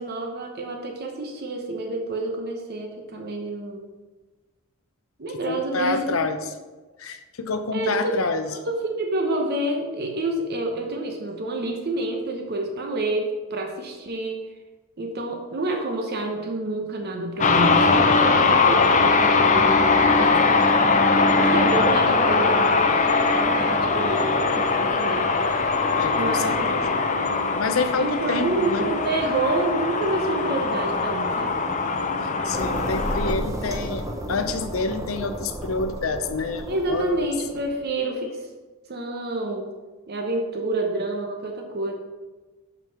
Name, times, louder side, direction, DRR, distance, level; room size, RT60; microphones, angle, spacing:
voice 1, 0.0-3.9 5.2-6.2 7.7-8.1 8.7-14.4 15.0-20.4 21.4-25.3 26.1-26.8 28.0-31.6 36.7-38.5 38.9-39.7 40.1-41.9, right 2 dB, 50° right, 3 dB, 0.8 m, -28 dB
voice 2, 5.4-6.4 7.0-8.5 26.0-26.8 27.6-28.9 32.4-37.3, left 3 dB, 85° left, 9 dB, 0.7 m, -28 dB
sound 1, 17.4-33.4, left 4 dB, 35° left, 0.7 m, -21 dB
sound 2, 32.5-37.8, right 1 dB, 15° right, 0.8 m, -32 dB
5.9 x 5.4 x 5.8 m, 1.2 s
head